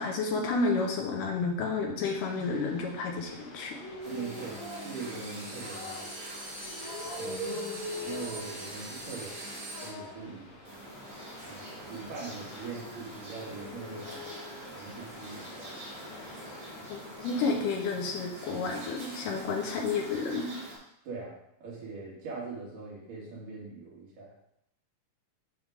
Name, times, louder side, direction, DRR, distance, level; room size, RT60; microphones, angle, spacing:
voice 1, 0.0-3.8 7.3-7.8 16.9-20.5, left 4 dB, 80° left, 1 dB, 2.6 m, -31 dB
sound 1, 2.1-17.6, left 1 dB, 60° left, 2.7 m, -44 dB
sound 2, 4.0-9.9 10.7-20.8, right 1 dB, 45° right, 2.9 m, -44 dB
voice 2, 4.0-6.0 7.2-7.4 8.1-9.4 9.8-10.6 11.5-14.3 14.7-15.7 21.1-24.3, right 4 dB, 75° right, -4 dB, 3.5 m, -42 dB
7.9 x 3.7 x 4.9 m, 0.78 s
omnidirectional pair, 3.8 m